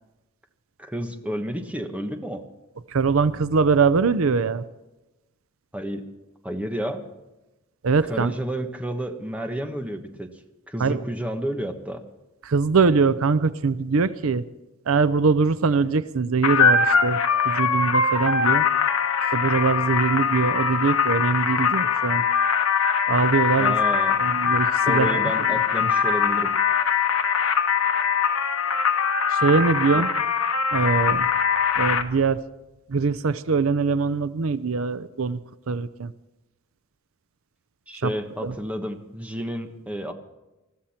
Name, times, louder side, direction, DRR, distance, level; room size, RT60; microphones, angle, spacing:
voice 1, 0.8-2.4 5.7-6.0 6.4-7.0 8.1-10.3 10.7-12.0 23.6-24.2 24.9-26.5 29.9-30.1 37.9-40.1, equal, 5° right, 5 dB, 1.3 m, -31 dB
voice 2, 2.9-4.6 7.8-8.3 10.8-11.0 12.4-14.4 14.9-17.2 17.4-18.7 19.3-22.2 23.1-23.8 24.2-25.2 25.5-25.9 29.3-30.1 30.7-31.3 31.8-32.4 32.9-35.4 35.7-36.1 38.0-38.1 38.4-38.5, right 4 dB, 70° right, 15 dB, 0.6 m, -22 dB
sound 1, 16.4-32.0, left 6 dB, 80° left, 1.1 m, -22 dB
21.0 x 13.5 x 4.3 m, 1.0 s
head